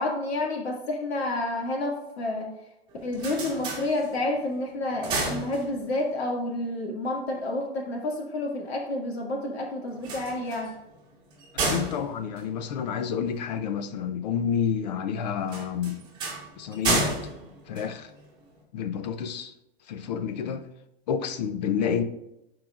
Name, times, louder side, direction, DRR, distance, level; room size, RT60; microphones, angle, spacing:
voice 1, 0.0-2.5 3.0-10.7, left 2 dB, 90° left, 2.2 m, -29 dB
sound 1, 2.9-4.4 4.8-6.1 9.9-13.4 15.5-18.5, right 2 dB, 15° right, 1.6 m, -32 dB
voice 2, 11.7-16.1 16.6-17.1 17.7-18.1 18.7-19.5 19.9-20.7 21.1-22.0, left 7 dB, 45° left, 0.6 m, -29 dB
11.5 x 4.8 x 2.4 m
hypercardioid pair, 160°, 31 cm